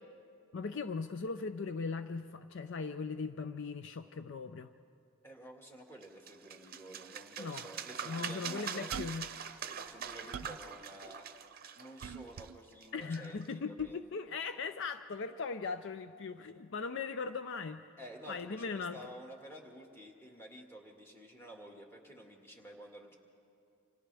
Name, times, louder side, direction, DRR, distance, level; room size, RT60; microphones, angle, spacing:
voice 1, 0.5-4.7 7.4-7.6 8.1-9.6 12.9-18.0 18.3-19.0, left 4 dB, 55° left, 10 dB, 0.5 m, -39 dB
voice 2, 5.2-8.9 9.6-11.3 11.8-14.0 18.0-23.2, right 1 dB, 10° left, 0 dB, 1.9 m, -51 dB
sound 1, 6.0-13.5, right 7 dB, 40° right, 0.8 m, -44 dB
sound 2, 8.9-9.3 9.9-10.7 12.0-12.6 13.8-13.9, right 7 dB, 75° right, 0.4 m, -44 dB
29.0 x 26.0 x 3.4 m, 2.4 s
head